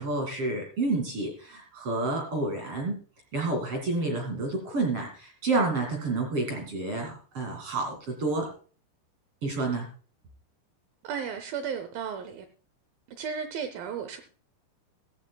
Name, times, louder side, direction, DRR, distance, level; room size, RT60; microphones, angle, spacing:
voice 1, 0.0-3.0 3.3-8.5 9.4-9.9, right 2 dB, 40° right, 2.6 m, -29 dB
voice 2, 11.0-12.5 13.2-14.2, right 7 dB, 75° right, 2.2 m, -34 dB
16.5 x 14.5 x 2.3 m
omnidirectional pair, 4.9 m